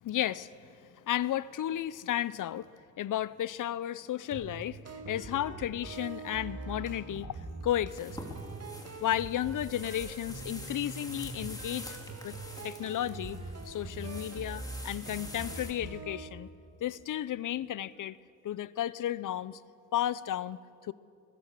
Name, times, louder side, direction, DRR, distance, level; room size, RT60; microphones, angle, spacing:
voice 1, 0.0-8.2 9.0-12.0 12.2-12.4 12.6-13.4 13.7-16.5 16.8-18.2 18.4-19.6 19.9-20.6 20.8-20.9, left 12 dB, 85° left, 19 dB, 0.6 m, -33 dB
sound 1, 4.3-16.3, right 3 dB, 55° right, 2.1 m, -43 dB
sound 2, 7.9-15.7, left 1 dB, 10° left, 2.8 m, -47 dB
22.0 x 17.5 x 7.4 m, 2.5 s
wide cardioid pair, 100°, 30 cm